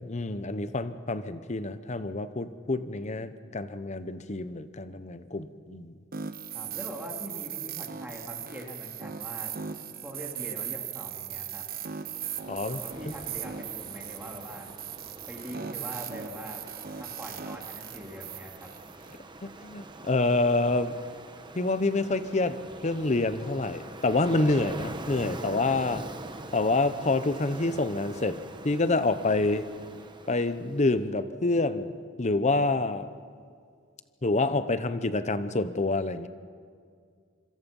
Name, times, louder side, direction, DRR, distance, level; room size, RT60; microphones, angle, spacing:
voice 1, 0.0-5.9 12.5-12.8 19.4-20.9 21.5-26.0 26.5-28.4 28.6-29.7 30.3-31.9 32.2-33.1 34.2-36.3, left 2 dB, 35° left, 12 dB, 0.9 m, -27 dB
sound 1, 6.1-19.2, right 8 dB, 50° right, 1.2 m, -38 dB
voice 2, 6.5-9.6 10.0-11.6 12.7-14.7 15.3-16.6 17.0-18.7, equal, 10° right, 0 dB, 3.3 m, -42 dB
Ocean, 11.8-30.9, right 2 dB, 25° right, 1.2 m, -44 dB
26.0 x 25.0 x 5.5 m, 2.1 s
head